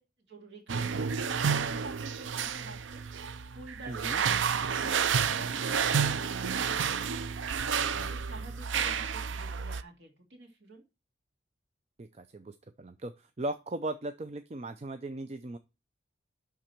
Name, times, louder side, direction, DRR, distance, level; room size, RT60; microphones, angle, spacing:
voice 1, 0.3-7.1 7.4-10.8, right 2 dB, 70° right, 2 dB, 2.4 m, -50 dB
sound 1, 0.7-9.8, right 6 dB, 85° right, 0.5 m, -30 dB
voice 2, 3.9-4.2 7.9-8.1 12.0-15.6, right 2 dB, 35° right, 9 dB, 0.5 m, -38 dB
11.5 x 3.8 x 4.4 m, 0.28 s
head